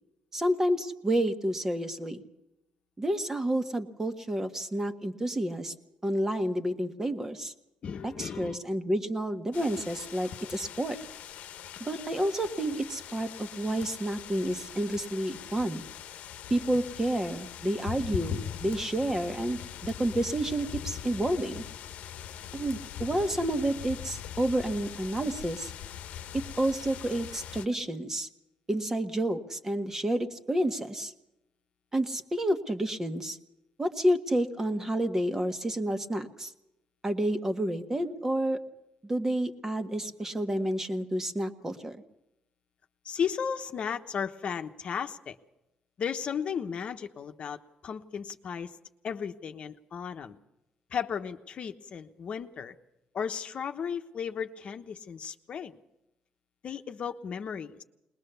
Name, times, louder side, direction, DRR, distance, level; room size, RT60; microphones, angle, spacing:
voice 1, 0.3-2.2 3.0-5.7 6.0-7.5 8.0-11.0 11.8-15.8 16.5-21.6 22.5-25.7 26.3-28.3 28.7-31.1 31.9-33.4 33.8-36.5 37.0-38.6 39.0-42.0, right 1 dB, 20° right, 8 dB, 1.5 m, -30 dB
voice 2, 7.8-8.6 43.0-45.4 46.0-48.8 49.0-50.4 50.9-52.7 53.1-55.8 56.6-57.8, left 7 dB, 55° left, 7 dB, 1.0 m, -35 dB
sound 1, 9.5-27.7, left 9 dB, 80° left, 1.0 m, -41 dB
21.0 x 20.0 x 6.9 m, 0.89 s
cardioid pair, 110°, 2 cm